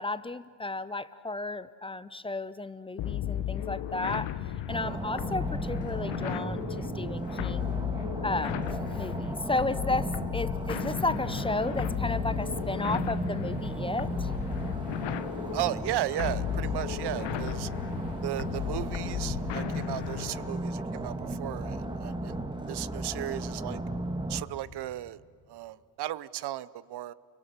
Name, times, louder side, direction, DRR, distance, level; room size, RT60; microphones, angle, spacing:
voice 1, 0.0-4.3 4.7-7.8 8.2-14.3, left 2 dB, 10° left, 15 dB, 0.6 m, -33 dB
sound 1, 3.0-20.6, left 11 dB, 70° left, 1.1 m, -35 dB
sound 2, 4.7-24.4, right 2 dB, 10° right, 1.5 m, -35 dB
sound 3, 11.8-19.6, right 1 dB, 30° right, 5.6 m, -52 dB
voice 2, 15.5-17.7 18.2-23.8 24.3-25.2 25.5-27.1, right 14 dB, 60° right, 19 dB, 0.7 m, -35 dB
29.0 x 24.0 x 6.8 m, 2.1 s
cardioid pair, 115°, 44 cm